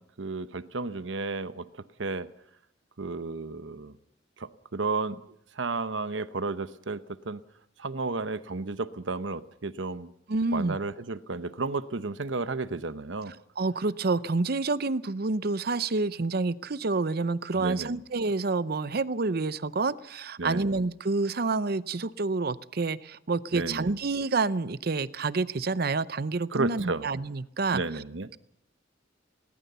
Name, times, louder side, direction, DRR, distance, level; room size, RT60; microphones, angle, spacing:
voice 1, 0.0-2.3 3.0-3.9 4.4-5.2 5.6-7.4 7.8-10.1 10.5-13.3 17.5-18.0 20.4-20.7 23.5-23.9 26.5-27.1 27.7-28.3, right 3 dB, 80° right, 13 dB, 1.0 m, -33 dB
voice 2, 10.3-10.8 13.6-27.8, right 3 dB, 55° right, 16 dB, 0.7 m, -28 dB
20.5 x 18.5 x 6.9 m, 0.76 s
head